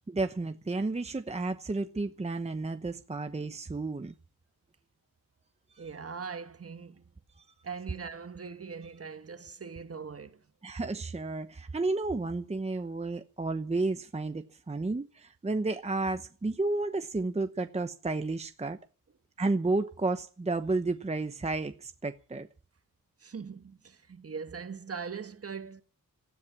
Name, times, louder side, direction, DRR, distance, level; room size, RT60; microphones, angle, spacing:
voice 1, 0.1-4.1 5.7-5.9 7.4-7.5 10.6-18.8 19.4-22.5, right 3 dB, 20° right, 0.9 m, -32 dB
voice 2, 5.8-7.0 7.6-10.4 23.2-25.8, right 5 dB, 45° right, 1.5 m, -41 dB
18.5 x 13.0 x 6.0 m
wide cardioid pair, 120°, 34 cm